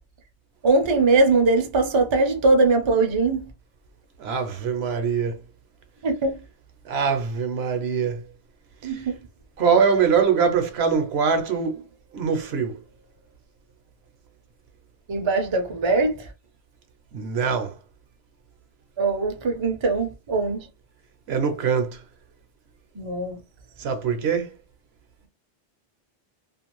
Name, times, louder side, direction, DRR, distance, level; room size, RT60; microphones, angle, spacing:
voice 1, 0.6-3.5 6.0-6.4 8.8-9.2 15.1-16.3 19.0-20.7 23.0-23.4, right 3 dB, 35° right, 0.4 m, -21 dB
voice 2, 4.2-5.4 6.8-8.3 8.8-9.0 9.6-11.8 12.1-12.8 17.1-17.8 21.3-22.0 23.8-24.5, right 6 dB, 65° right, 0.8 m, -23 dB
2.5 x 2.4 x 3.0 m
omnidirectional pair, 1.2 m